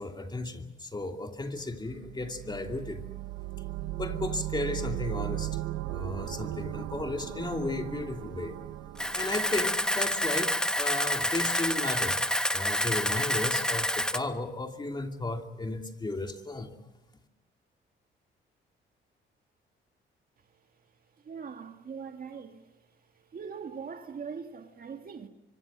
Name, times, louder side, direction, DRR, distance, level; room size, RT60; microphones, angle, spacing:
voice 1, 0.0-3.0 4.0-5.6 5.8-8.5 9.1-12.2 12.5-16.8, left 2 dB, 20° left, 2.7 m, -34 dB
sound 1, 1.7-10.6, right 15 dB, 90° right, 0.9 m, -37 dB
Camera, 9.0-14.2, equal, 5° left, 1.2 m, -28 dB
voice 2, 21.2-22.7 23.2-25.3, right 6 dB, 45° right, 2.1 m, -41 dB
25.0 x 25.0 x 6.2 m
cardioid pair, 90°, 20 cm